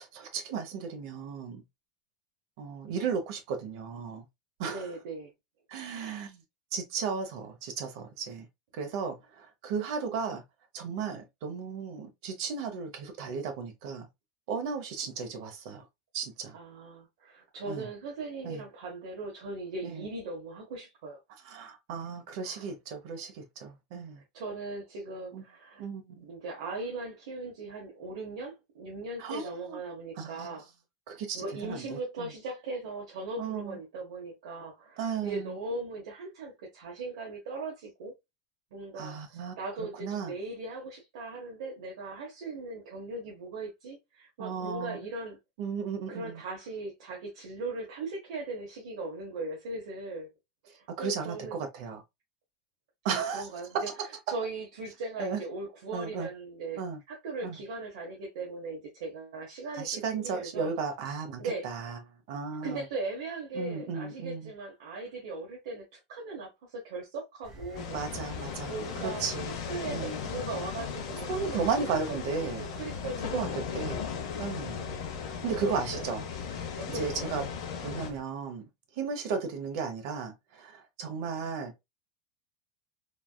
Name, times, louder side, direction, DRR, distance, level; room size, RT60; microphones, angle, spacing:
voice 1, 0.0-1.6 2.6-4.3 4.6-4.9 5.7-6.4 6.7-8.5 8.7-10.4 10.7-14.1 14.5-15.8 16.1-16.5 17.7-17.9 18.4-18.6 19.8-20.1 21.4-24.2 25.3-25.4 25.8-26.3 29.2-29.8 30.2-30.6 31.1-32.3 33.4-33.8 35.0-35.5 39.0-40.3 44.4-45.0 45.6-46.4 51.0-52.0 53.0-53.5 53.9-54.0 55.2-55.4 55.9-56.3 56.8-57.0 57.4-57.6 59.8-62.0 62.3-62.8 63.5-64.5 67.9-68.7 69.0-69.5 69.9-70.2 71.3-72.6 73.3-73.5 73.7-74.0 74.4-74.8 75.3-76.2 76.5-76.7 76.9-77.4 77.8-78.6 79.0-81.8, right 5 dB, 50° right, 0.7 m, -35 dB
voice 2, 4.6-5.3 5.9-6.2 16.5-21.2 22.4-22.7 24.3-25.9 26.2-30.7 31.3-38.1 38.7-45.4 46.1-50.3 50.6-51.6 53.1-56.8 57.1-60.7 61.4-61.7 62.6-69.2 69.7-74.0 75.5-76.0 76.8-77.3, right 3 dB, 75° right, 0.9 m, -39 dB
Engine, 67.4-78.2, equal, 15° right, 1.0 m, -49 dB
sound 1, 67.8-78.1, left 7 dB, 60° left, 0.7 m, -37 dB
3.3 x 2.3 x 2.2 m
supercardioid pair, 175°, 3 cm